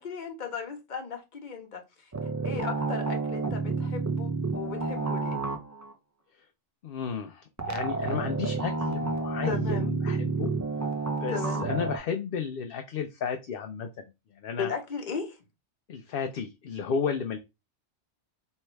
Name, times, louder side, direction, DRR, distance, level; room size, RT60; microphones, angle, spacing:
voice 1, 0.0-1.8 2.2-5.4 9.5-9.9 11.3-11.7 14.6-15.4, left 6 dB, 45° left, 1.0 m, -36 dB
sound 1, 2.1-5.9 7.6-12.0, right 3 dB, 25° right, 0.4 m, -30 dB
voice 2, 6.8-10.5 11.2-11.3 11.6-13.9 14.4-14.7 15.9-17.4, left 6 dB, 60° left, 0.7 m, -33 dB
3.4 x 3.2 x 4.4 m
omnidirectional pair, 1.2 m